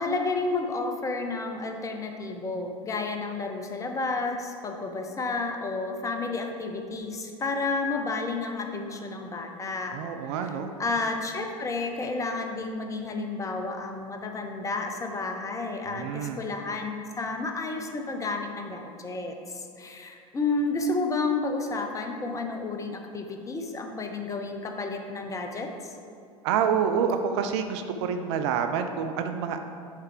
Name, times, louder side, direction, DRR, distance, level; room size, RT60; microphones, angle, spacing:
voice 1, 0.0-10.0 10.8-25.9, left 3 dB, 20° left, 4 dB, 0.6 m, -31 dB
voice 2, 9.9-10.7 15.9-16.4 26.4-29.6, right 7 dB, 50° right, 7 dB, 0.4 m, -27 dB
7.3 x 4.5 x 3.7 m, 2.4 s
figure-of-eight pair, 75°, 18 cm